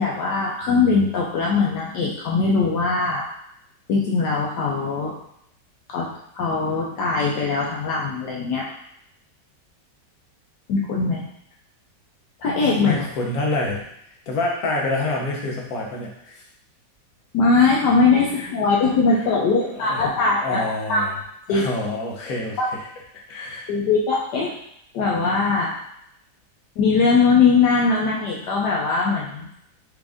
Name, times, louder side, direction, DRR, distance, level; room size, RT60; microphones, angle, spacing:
voice 1, 0.0-3.3 3.9-5.2 5.9-8.7 10.7-11.3 12.4-13.0 17.3-21.0 21.5-21.6 22.6-22.7 23.7-24.5 24.9-25.8 26.8-29.5, left 4 dB, 75° left, -3 dB, 1.3 m, -20 dB
voice 2, 12.8-13.9 14.3-16.4 18.3-18.5 19.1-19.3 19.6-20.0 20.4-21.2 21.5-22.9 23.3-23.7, left 2 dB, 60° left, -2 dB, 1.3 m, -27 dB
5.1 x 2.5 x 3.5 m, 0.74 s
omnidirectional pair, 1.9 m